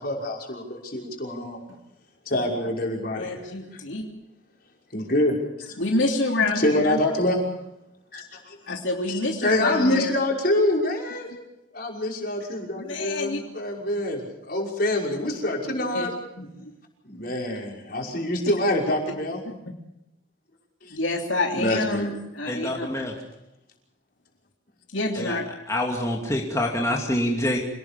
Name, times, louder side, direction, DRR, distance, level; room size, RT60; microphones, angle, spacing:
voice 1, 0.0-1.6 2.3-3.5 4.9-5.8 6.6-7.4 8.1-8.8 9.1-11.3 11.7-16.1 17.0-19.4 20.8-21.0 21.5-22.2, left 1 dB, 50° left, 0 dB, 5.8 m, -26 dB
voice 2, 3.1-4.0 5.8-7.0 8.7-10.2 12.8-13.4 15.7-16.1 16.4-16.7 19.0-19.1 19.4-19.6 20.9-22.9 24.9-25.5, left 2 dB, 70° left, 1 dB, 3.1 m, -27 dB
voice 3, 22.5-23.1 25.2-25.4 25.7-27.6, left 1 dB, 15° left, 0 dB, 2.6 m, -26 dB
27.5 x 19.0 x 7.0 m, 0.87 s
head